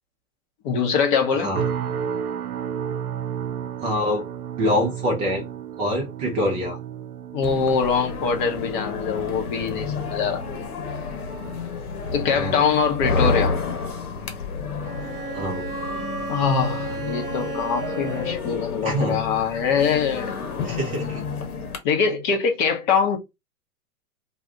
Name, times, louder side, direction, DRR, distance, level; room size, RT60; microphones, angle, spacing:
voice 1, 0.6-1.5 7.3-10.6 12.1-13.5 16.3-20.4 21.8-23.2, left 6 dB, 35° left, 0.6 m, -23 dB
voice 2, 1.3-1.7 3.8-4.2 4.6-5.4 5.8-6.8 12.3-12.6 15.3-15.6 18.8-19.2 20.6-21.2, equal, 20° right, 0.4 m, -25 dB
sound 1, 1.5-16.8 17.1-17.5 18.0-18.2, right 8 dB, 85° right, 0.6 m, -35 dB
sound 2, 7.4-21.8, left 5 dB, 75° left, 0.9 m, -30 dB
Bowed string instrument, 14.8-18.6, right 6 dB, 50° right, 0.9 m, -34 dB
2.3 x 2.1 x 3.6 m
hypercardioid pair, 110°, 44 cm